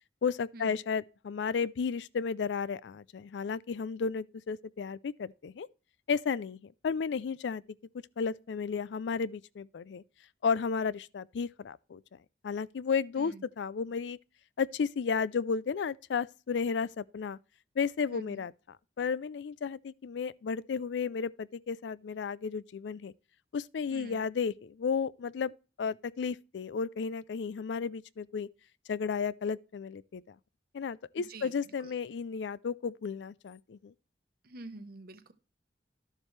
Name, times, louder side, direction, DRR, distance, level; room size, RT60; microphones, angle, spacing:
voice 1, 0.2-5.7 6.1-7.6 8.2-10.0 10.4-12.0 12.4-14.2 14.6-17.4 17.8-18.5 19.0-23.1 23.5-25.5 25.8-28.5 28.9-30.3 30.7-33.9, left 5 dB, 90° left, 0.4 m, -33 dB
voice 2, 18.1-18.4 23.9-24.2 31.3-32.0 34.4-35.3, right 2 dB, 60° right, 0.9 m, -47 dB
12.0 x 7.3 x 3.2 m
head